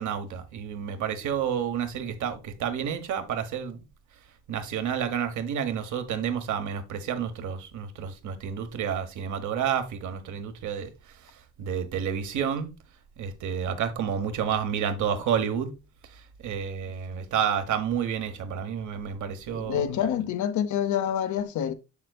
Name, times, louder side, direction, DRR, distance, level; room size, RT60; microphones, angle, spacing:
voice 1, 0.0-3.8 4.5-10.9 11.6-12.7 13.2-15.7 16.1-19.8, right 8 dB, 75° right, 1.2 m, -30 dB
voice 2, 19.5-21.7, left 9 dB, 75° left, 0.9 m, -27 dB
7.3 x 6.7 x 2.3 m
cardioid pair, 90°, 30 cm